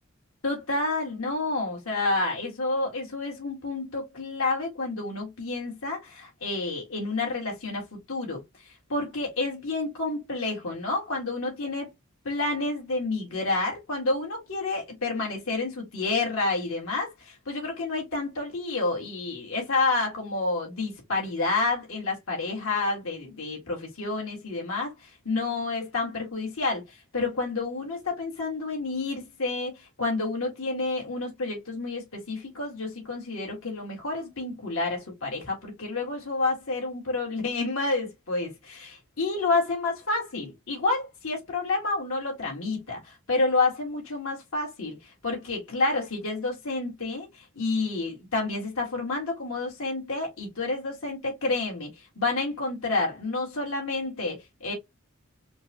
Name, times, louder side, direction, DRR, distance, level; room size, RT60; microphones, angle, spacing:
voice 1, 0.4-8.4 8.9-11.9 12.2-45.0 45.2-54.7, left 3 dB, 85° left, 1.8 m, -29 dB
4.4 x 2.2 x 2.8 m
head